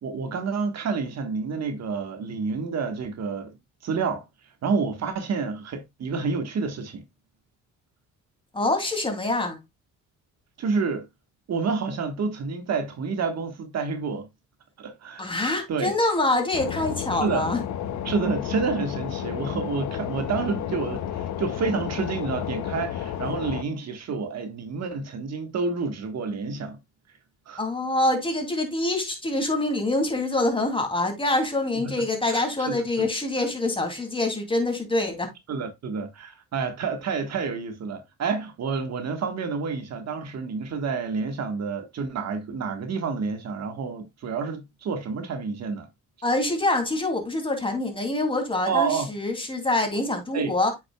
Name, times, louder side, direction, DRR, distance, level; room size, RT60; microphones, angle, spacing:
voice 1, 0.0-3.5 3.8-4.2 4.6-7.0 10.6-11.1 11.5-14.3 14.8-15.3 15.7-15.9 17.2-17.5 18.0-26.8 27.5-27.6 31.7-31.9 32.3-33.1 35.5-45.9 48.6-49.1 50.3-50.5, right 5 dB, 60° right, 1.4 m, -29 dB
voice 2, 8.5-9.6 15.2-17.6 27.6-35.3 46.2-50.7, left 2 dB, 15° left, 2.6 m, -25 dB
sound 1, 16.5-23.6, left 10 dB, 70° left, 0.8 m, -31 dB
8.5 x 6.3 x 2.3 m
cardioid pair, 90°, 30 cm